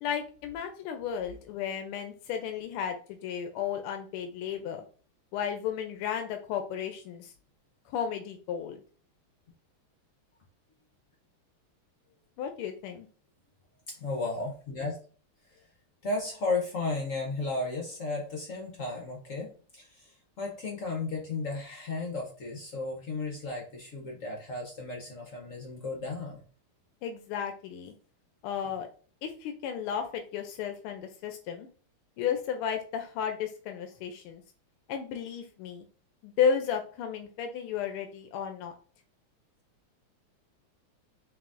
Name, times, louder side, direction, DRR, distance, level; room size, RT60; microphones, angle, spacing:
voice 1, 0.0-4.8 5.3-7.3 7.9-8.8 12.4-13.1 27.0-27.9 28.4-28.9 29.2-31.7 32.2-34.4 34.9-35.9 36.2-38.7, left 7 dB, 90° left, 6 dB, 1.5 m, -33 dB
voice 2, 13.9-15.0 15.5-15.6 16.0-26.4, left 3 dB, 60° left, 0 dB, 0.8 m, -34 dB
4.8 x 3.3 x 2.5 m, 0.41 s
omnidirectional pair, 2.4 m